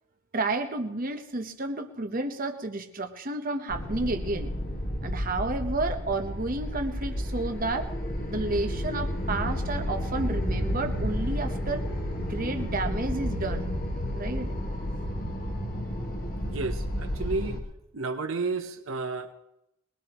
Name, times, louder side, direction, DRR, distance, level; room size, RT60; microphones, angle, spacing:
voice 1, 0.3-4.5 5.0-7.9 8.3-11.8 12.2-13.7 14.2-14.5, right 2 dB, 40° right, 6 dB, 0.9 m, -31 dB
sound 1, 3.7-17.6, equal, 45° left, 1.6 m, -31 dB
voice 2, 16.5-17.6 17.9-19.3, right 3 dB, 70° right, 7 dB, 0.9 m, -32 dB
21.5 x 21.0 x 3.0 m, 0.85 s
head